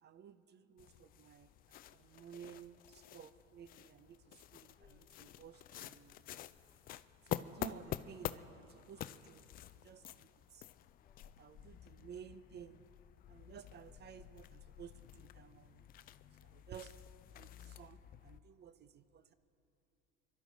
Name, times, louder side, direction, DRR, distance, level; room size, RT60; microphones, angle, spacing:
voice 1, 0.0-1.5 1.9-6.2 7.3-10.7 11.4-12.8 13.3-15.8 16.4-16.9 17.3-19.3, right 8 dB, 25° right, 13 dB, 0.5 m, -55 dB
sound 1, 0.8-18.4, left 12 dB, 25° left, 0.3 m, -49 dB
voice 2, 4.8-5.2 11.0-11.4 16.0-16.3, left 4 dB, 5° left, -4 dB, 3.2 m, -74 dB
26.5 x 12.0 x 4.0 m, 2.8 s
hypercardioid pair, 80°, 40 cm